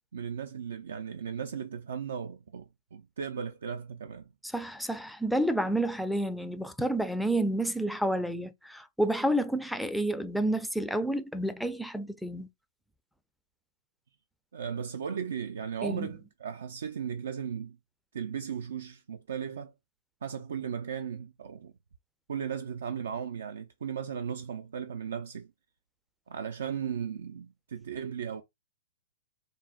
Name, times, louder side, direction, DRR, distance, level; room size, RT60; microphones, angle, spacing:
voice 1, 0.0-4.3 14.5-17.8 18.1-19.7 20.2-21.7 22.3-25.5 26.3-28.4, right 7 dB, 75° right, 0.4 m, -36 dB
voice 2, 4.5-12.5 15.8-16.1, right 1 dB, ahead, 0.3 m, -30 dB
3.7 x 2.1 x 2.4 m
hypercardioid pair, 125°, 0 cm